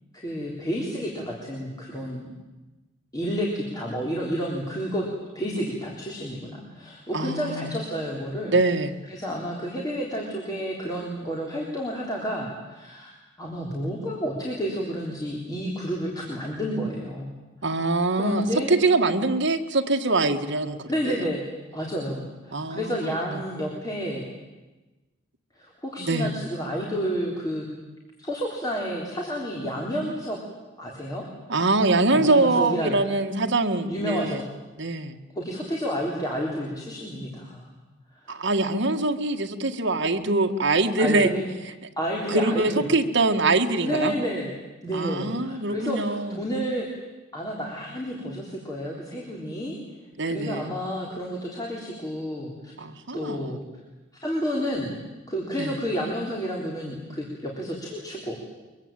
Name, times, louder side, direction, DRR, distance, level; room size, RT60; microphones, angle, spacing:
voice 1, 0.1-2.3 3.1-5.0 5.3-8.5 9.1-17.3 18.2-18.7 20.9-21.4 21.7-24.3 25.6-27.7 28.2-30.4 30.8-31.2 32.1-33.0 33.9-34.5 35.3-37.7 38.1-38.3 40.1-40.3 41.0-41.5 42.0-42.9 43.8-44.5 44.8-46.9 47.3-49.8 50.2-52.7 53.1-53.6 54.2-55.0 55.3-58.4, equal, 20° left, -2 dB, 3.8 m, -30 dB
voice 2, 7.1-7.8 8.5-8.9 17.6-21.3 22.5-23.0 23.3-23.4 26.0-26.4 31.5-34.4 34.8-35.2 38.3-41.3 42.3-44.1 44.9-46.4 50.2-50.7 52.8-53.5 55.6-55.8, right 2 dB, 60° right, 4 dB, 1.8 m, -24 dB
23.5 x 22.5 x 9.0 m, 1.1 s
head